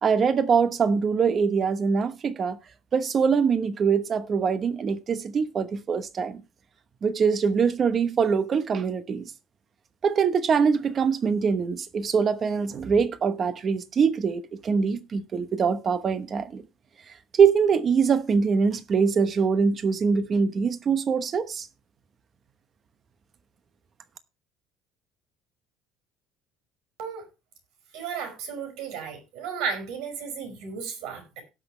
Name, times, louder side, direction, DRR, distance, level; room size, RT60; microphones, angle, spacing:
voice 1, 0.0-2.6 2.9-6.4 7.0-9.3 10.0-16.6 17.4-21.7, right 6 dB, 30° right, 0.9 m, -23 dB
voice 2, 27.9-31.4, right 6 dB, 75° right, 5.6 m, -34 dB
18.0 x 6.2 x 3.2 m
cardioid pair, 150°, 0 cm